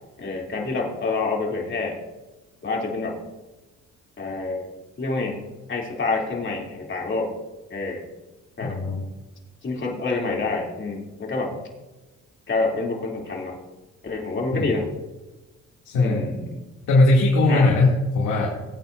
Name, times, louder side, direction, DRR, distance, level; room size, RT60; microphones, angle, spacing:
voice 1, 0.2-2.0 2.6-3.2 4.2-4.6 5.0-5.4 5.7-7.3 7.7-8.0 8.6-8.8 9.6-11.5 12.5-13.6 14.0-14.8 15.9-16.5 17.5-17.7, left 3 dB, 40° left, -1 dB, 3.1 m, -27 dB
voice 2, 8.6-9.0 14.5-14.7 15.8-16.3 16.9-18.5, left 2 dB, 90° left, -4 dB, 2.6 m, -19 dB
20.5 x 8.9 x 2.6 m, 1.1 s
cardioid pair, 90°, 30 cm